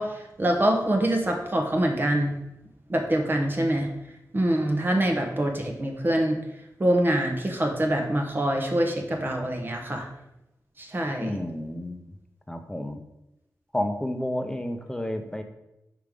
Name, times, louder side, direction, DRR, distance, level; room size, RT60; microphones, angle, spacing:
voice 1, 0.0-2.3 2.9-3.9 4.3-6.4 6.8-10.1 10.8-11.4, right 1 dB, 30° right, 2 dB, 0.9 m, -25 dB
voice 2, 11.2-12.0 12.5-13.0 13.7-15.4, left 1 dB, 10° left, 6 dB, 0.8 m, -30 dB
5.2 x 4.8 x 5.2 m, 0.89 s
wide cardioid pair, 85°, 6 cm